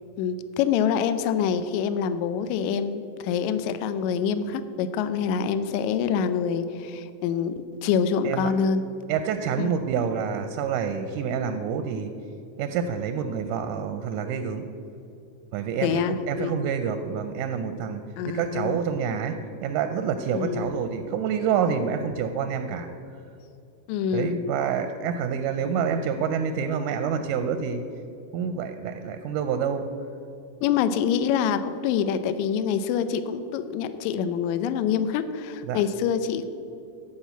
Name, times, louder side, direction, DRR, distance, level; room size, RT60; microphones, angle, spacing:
voice 1, 0.2-7.5 7.8-8.8 9.5-9.7 15.8-16.5 18.2-18.8 20.3-20.7 23.9-24.4 30.6-36.4, left 7 dB, 85° left, 11 dB, 1.7 m, -26 dB
voice 2, 9.1-12.1 12.6-14.7 15.5-22.9 24.1-27.8 28.3-29.9 35.7-35.8, right 7 dB, 80° right, 8 dB, 1.9 m, -27 dB
12.0 x 5.0 x 8.1 m, 2.6 s
omnidirectional pair, 3.9 m